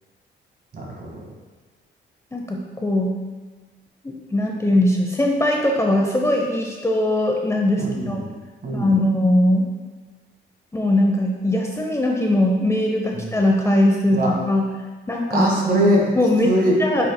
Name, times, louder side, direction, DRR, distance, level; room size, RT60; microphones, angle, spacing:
voice 1, 0.7-1.3 7.8-8.3 8.6-8.9 13.1-13.4 14.1-14.3 15.3-16.1 16.4-16.8, equal, 50° right, -1 dB, 1.9 m, -22 dB
voice 2, 2.3-3.2 4.0-8.2 8.7-9.7 10.7-14.7 15.1-15.5 16.1-16.5 16.8-17.1, left 1 dB, 15° left, 0 dB, 0.7 m, -20 dB
8.2 x 5.7 x 2.2 m, 1.3 s
cardioid pair, 90°, 20 cm